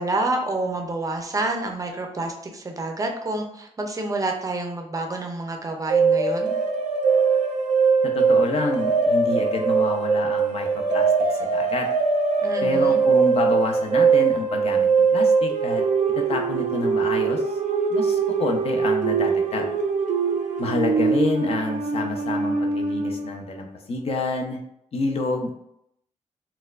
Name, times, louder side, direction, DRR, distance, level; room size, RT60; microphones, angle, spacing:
voice 1, 0.0-6.5 12.4-13.0, right 2 dB, 25° right, 3 dB, 0.5 m, -28 dB
sound 1, 5.9-23.3, right 5 dB, 85° right, 0.5 m, -22 dB
voice 2, 8.0-11.9 12.6-15.8 16.2-17.4 17.9-19.7 20.6-24.6 24.9-25.5, left 3 dB, 55° left, 2 dB, 0.6 m, -28 dB
4.2 x 2.2 x 2.4 m, 0.76 s
wide cardioid pair, 135°, 12 cm